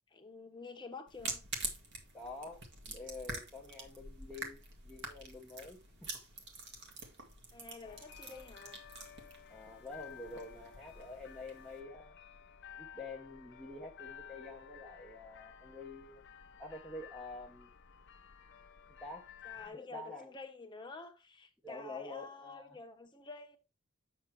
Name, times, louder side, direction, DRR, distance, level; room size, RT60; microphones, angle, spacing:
voice 1, 0.1-1.5 7.5-8.8 19.4-23.6, left 3 dB, 20° left, 1.2 m, -49 dB
sound 1, 1.1-11.8, right 3 dB, 50° right, 2.0 m, -46 dB
voice 2, 2.1-6.1 9.5-12.2 12.8-16.2 16.6-17.7 19.0-20.3 21.6-22.8, left 2 dB, ahead, 1.0 m, -48 dB
sound 2, 7.8-19.7, left 8 dB, 55° left, 0.7 m, -54 dB
8.5 x 6.4 x 3.2 m
head